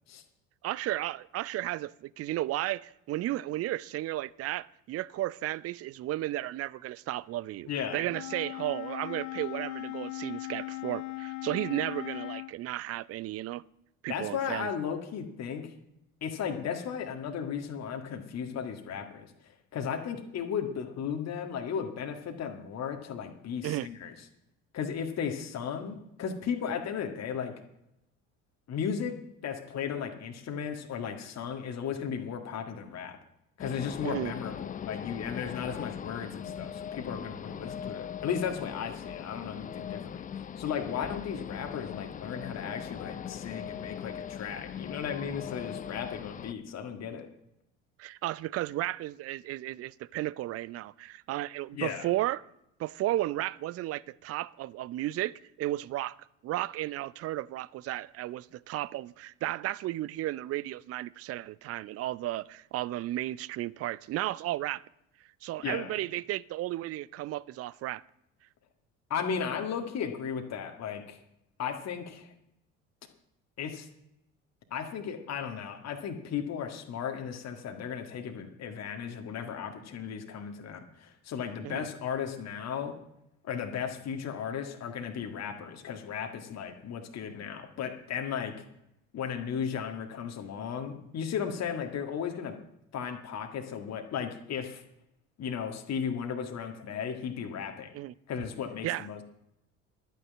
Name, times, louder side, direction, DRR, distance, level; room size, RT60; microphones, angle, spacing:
voice 1, 0.6-13.6 14.0-14.7 23.6-23.9 34.0-34.3 48.0-52.4 52.8-56.2 56.4-64.8 65.4-68.0 81.6-81.9 97.9-98.1 98.8-99.1, right 15 dB, 40° right, 0.5 m, -34 dB
voice 2, 7.7-8.0 14.1-15.7 16.2-19.3 19.7-24.1 24.7-27.5 28.7-29.2 29.4-33.2 33.6-47.3 51.7-52.0 65.6-65.9 69.1-71.2 71.6-72.3 73.6-73.9 74.7-83.0 83.4-88.5 89.1-92.6 92.9-94.8 95.4-97.9 98.3-99.2, left 7 dB, 40° left, 1.8 m, -35 dB
Wind instrument woodwind instrument, 8.1-12.5, left 23 dB, 70° left, 0.6 m, -38 dB
sound 1, 33.6-46.5, left 8 dB, 20° left, 0.5 m, -40 dB
12.0 x 9.4 x 7.5 m
figure-of-eight pair, 60°, 40 cm